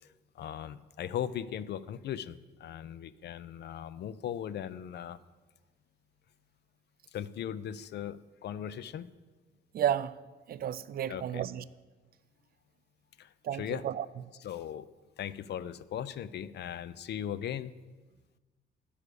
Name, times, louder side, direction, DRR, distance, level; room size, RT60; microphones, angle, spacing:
voice 1, 0.0-5.2 7.1-9.1 11.1-11.5 13.2-13.8 14.4-14.9 15.2-17.7, left 10 dB, 60° left, 0.4 m, -38 dB
voice 2, 9.7-10.2 10.5-11.6 13.4-14.1, right 10 dB, 50° right, 0.4 m, -32 dB
9.8 x 4.9 x 6.7 m
cardioid pair, 90°, 20 cm